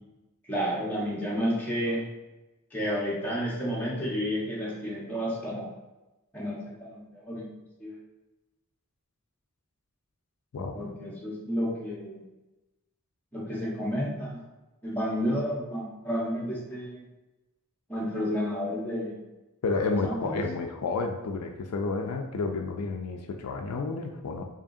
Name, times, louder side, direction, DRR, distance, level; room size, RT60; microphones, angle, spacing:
voice 1, 0.5-2.0 2.7-5.7 6.3-7.4 7.8-7.9 10.7-12.2 13.3-14.4 14.8-17.0 17.9-19.2 20.0-20.4, equal, 5° left, -7 dB, 1.3 m, -31 dB
voice 2, 19.6-24.5, left 3 dB, 80° left, 4 dB, 0.4 m, -30 dB
4.8 x 2.8 x 2.7 m, 1.0 s
head